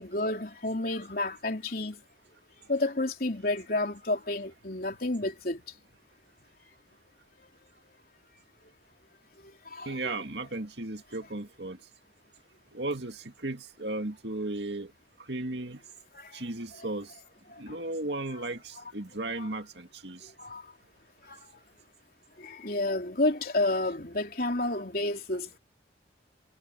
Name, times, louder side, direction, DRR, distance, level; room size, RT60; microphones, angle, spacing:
voice 1, 0.0-2.0 2.7-5.6 9.7-10.1 19.4-19.5 20.4-20.6 21.3-21.4 22.4-25.6, left 2 dB, 50° left, 3.8 m, -30 dB
voice 2, 9.9-11.8 12.7-14.9 15.3-15.8 16.3-17.1 17.6-20.2, right 2 dB, 65° right, 2.2 m, -35 dB
head